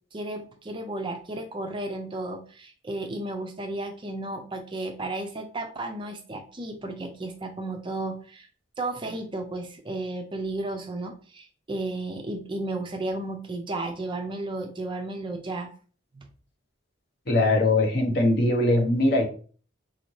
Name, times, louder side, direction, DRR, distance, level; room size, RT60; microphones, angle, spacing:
voice 1, 0.1-8.5 8.8-15.7 16.1-16.3, right 2 dB, 25° right, 4 dB, 0.4 m, -33 dB
voice 2, 17.3-19.2, left 2 dB, 50° left, 2 dB, 0.9 m, -21 dB
4.2 x 2.6 x 3.1 m, 0.41 s
head